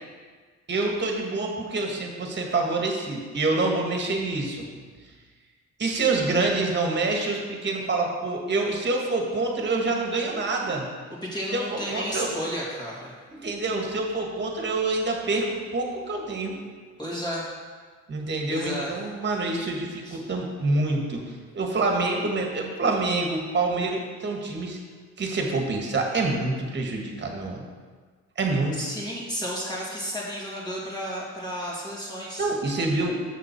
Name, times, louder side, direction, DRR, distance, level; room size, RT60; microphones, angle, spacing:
voice 1, 0.7-4.7 5.8-10.8 11.5-12.3 13.3-16.6 18.1-21.2 21.5-24.8 25.2-27.6 28.4-28.8 32.4-33.3, right 3 dB, 35° right, 1 dB, 1.6 m, -26 dB
voice 2, 11.2-13.1 17.0-17.4 18.5-18.9 20.0-20.2 28.7-32.5, equal, 15° left, -6 dB, 2.7 m, -32 dB
7.5 x 6.3 x 4.5 m, 1.5 s
cardioid pair, 90°, 30 cm